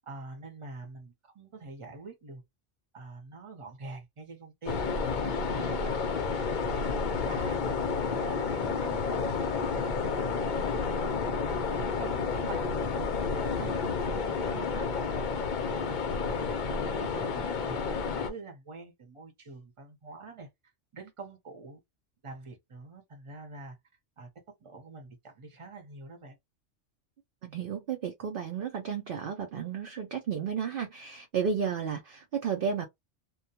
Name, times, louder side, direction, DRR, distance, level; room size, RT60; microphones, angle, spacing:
voice 1, 0.1-2.4 2.9-6.0 6.4-7.6 8.0-12.9 13.3-15.1 15.6-20.5 20.9-21.8 22.2-23.8 24.2-26.4, right 3 dB, 30° right, 0.8 m, -46 dB
sound 1, 4.6-18.3, left 5 dB, 55° left, 0.6 m, -30 dB
voice 2, 27.4-32.9, right 7 dB, 60° right, 0.6 m, -32 dB
2.2 x 2.2 x 2.8 m
omnidirectional pair, 1.3 m